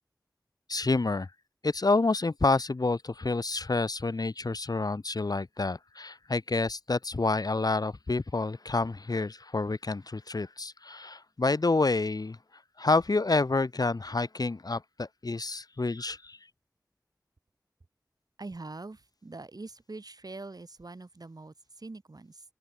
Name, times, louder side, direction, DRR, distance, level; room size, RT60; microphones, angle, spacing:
voice 1, 0.7-1.3 1.6-12.4 12.8-16.4, left 3 dB, 70° left, 2.2 m, -28 dB
voice 2, 18.4-22.4, right 3 dB, 65° right, 5.6 m, -43 dB
open air
wide cardioid pair, 60°, 7 cm